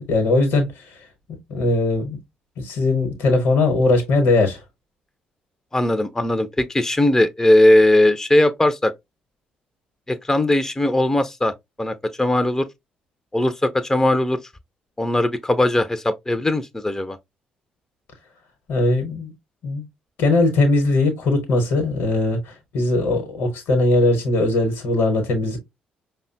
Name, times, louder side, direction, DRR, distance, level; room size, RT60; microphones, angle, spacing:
voice 1, 0.1-1.0 1.5-2.2 2.6-4.6 18.7-19.3 19.6-19.8 20.2-25.6, left 2 dB, 70° left, 1.0 m, -20 dB
voice 2, 5.7-8.9 10.1-11.5 11.8-12.7 13.3-14.4 15.0-17.2, left 1 dB, 10° left, 0.4 m, -19 dB
5.2 x 2.1 x 2.6 m
hypercardioid pair, 45°, 4 cm